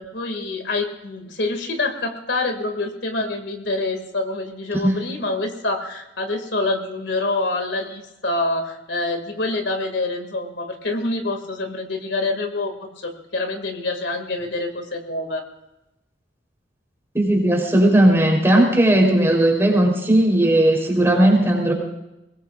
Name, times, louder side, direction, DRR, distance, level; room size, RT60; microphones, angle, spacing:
voice 1, 0.0-15.4, left 2 dB, 80° left, 5 dB, 2.4 m, -26 dB
voice 2, 17.1-21.7, right 1 dB, 15° right, 0 dB, 3.8 m, -17 dB
22.5 x 20.0 x 2.5 m, 0.92 s
head